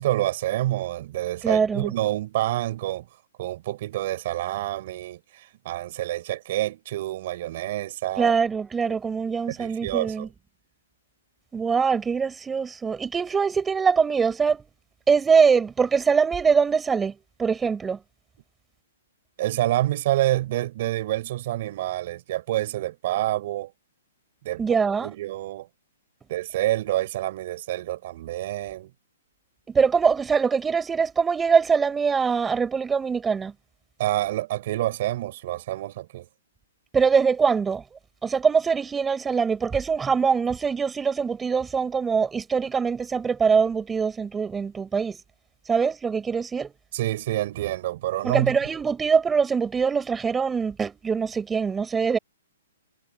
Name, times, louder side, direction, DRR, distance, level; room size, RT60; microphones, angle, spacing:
voice 1, 0.0-3.1 3.4-8.3 8.9-9.0 9.6-10.3 19.4-23.7 24.4-24.6 25.0-25.7 26.3-28.9 34.0-36.3 46.9-48.6, right 15 dB, 50° right, 4.8 m, -27 dB
voice 2, 1.4-1.9 8.2-10.3 11.5-14.7 15.1-17.1 17.4-18.0 24.6-25.1 29.7-33.5 36.9-37.8 38.2-45.2 45.7-46.7 48.2-52.2, right 5 dB, 10° right, 4.7 m, -23 dB
hypercardioid pair, 140°, 0 cm